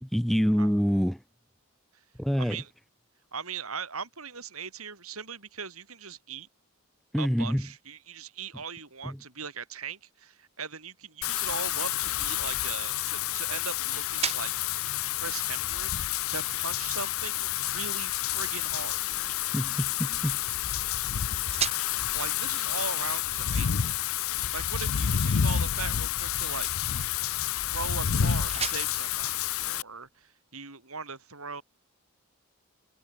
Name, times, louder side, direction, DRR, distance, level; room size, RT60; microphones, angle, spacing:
voice 1, 0.0-1.2 2.2-2.6 7.1-7.7 9.0-9.2 19.5-20.4, equal, ahead, 0.7 m, -26 dB
voice 2, 2.4-2.7 3.3-6.5 7.2-14.5 15.1-19.0 22.1-23.9 24.5-26.7 27.6-31.6, right 5 dB, 80° right, 7.6 m, -39 dB
Wind / Rain, 11.2-29.8, left 10 dB, 75° left, 0.6 m, -29 dB
sound 1, 11.5-30.3, right 7 dB, 30° right, 7.5 m, -43 dB
head